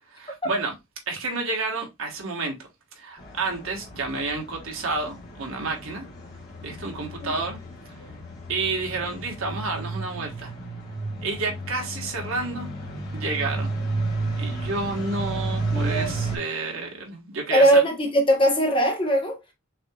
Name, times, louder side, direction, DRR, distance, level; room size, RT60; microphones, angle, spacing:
voice 1, 0.1-0.7 1.1-2.5 2.9-6.0 6.6-7.6 8.5-10.5 11.2-12.7 13.1-13.7 14.4-17.8, right 3 dB, 70° right, 1.4 m, -30 dB
sound 1, 3.2-16.4, right 2 dB, 45° left, 1.4 m, -32 dB
voice 2, 15.7-16.1 17.5-19.4, right 1 dB, 25° left, 1.0 m, -20 dB
6.3 x 2.9 x 2.3 m
head